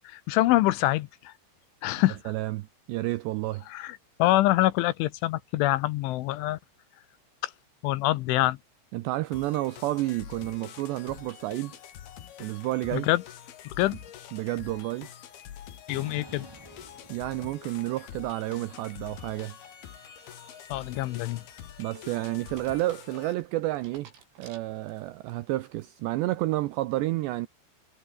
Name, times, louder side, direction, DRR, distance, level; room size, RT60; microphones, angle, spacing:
voice 1, 0.0-1.3 1.8-2.2 3.7-6.6 7.4-7.5 7.8-8.6 12.9-13.2 13.8-14.0 15.9-16.5 20.7-21.4, left 17 dB, 75° left, 3.1 m, -25 dB
voice 2, 2.3-3.6 8.9-11.7 12.4-13.1 14.3-15.1 17.1-19.6 21.8-24.1 24.4-27.5, right 17 dB, 85° right, 2.5 m, -30 dB
sound 1, 9.3-23.3, left 10 dB, 60° left, 3.5 m, -46 dB
sound 2, 15.9-17.8 18.2-22.5, right 1 dB, 10° right, 1.2 m, -52 dB
sound 3, 21.1-25.3 25.8-26.2, right 7 dB, 65° right, 7.1 m, -56 dB
omnidirectional pair, 6.0 m